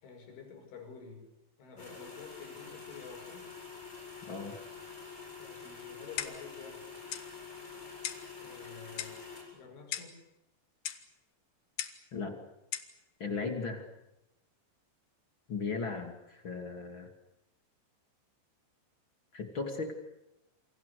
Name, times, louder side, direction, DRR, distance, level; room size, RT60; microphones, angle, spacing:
voice 1, 0.0-1.3 1.6-3.5 5.4-6.8 8.4-9.1 9.5-10.2, left 5 dB, 80° left, 4 dB, 8.1 m, -49 dB
sound 1, 1.8-9.4, left 5 dB, 15° left, 7.9 m, -47 dB
voice 2, 4.3-4.6 12.1-12.4 13.2-13.9 15.5-17.1 19.3-19.9, left 4 dB, 35° left, 5 dB, 2.5 m, -36 dB
Clock, 6.2-6.5 7.1-7.3 8.0-8.3 9.0-9.3 9.9-10.2 10.9-11.1 11.8-12.1 12.7-13.0, left 11 dB, 65° left, 2.8 m, -38 dB
28.0 x 26.0 x 6.8 m, 0.86 s
omnidirectional pair, 5.4 m